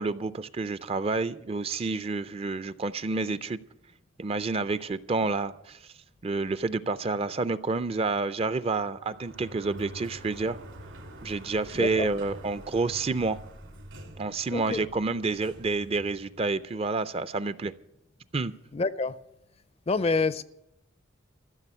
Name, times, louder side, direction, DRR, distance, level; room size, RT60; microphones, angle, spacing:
voice 1, 0.0-3.6 4.2-5.8 6.2-10.6 11.2-13.4 14.2-17.7 18.3-18.5, right 3 dB, 30° right, 14 dB, 0.4 m, -29 dB
Sliding door, 8.9-16.7, right 1 dB, 75° right, 2.8 m, -46 dB
voice 2, 11.7-12.1 14.5-14.8 18.7-19.2 19.9-20.4, left 4 dB, 30° left, 15 dB, 0.4 m, -27 dB
15.0 x 6.8 x 9.9 m, 0.86 s
head